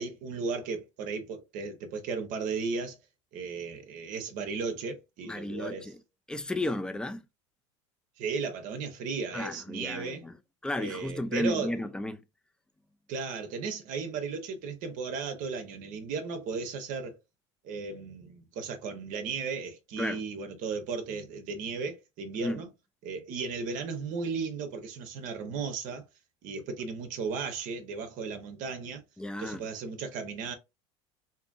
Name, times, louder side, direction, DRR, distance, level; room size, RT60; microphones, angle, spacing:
voice 1, 0.0-3.0 3.3-5.9 8.2-10.3 10.8-11.7 13.1-17.2 17.6-22.7 23.0-26.1 26.4-29.0 29.4-30.5, right 5 dB, 60° right, 0.7 m, -35 dB
voice 2, 5.2-6.0 6.3-7.3 9.3-10.4 10.6-12.2 20.0-20.2 22.4-22.6 29.2-29.7, left 1 dB, 5° left, 0.4 m, -33 dB
2.7 x 2.5 x 2.3 m
hypercardioid pair, 95°, 15 cm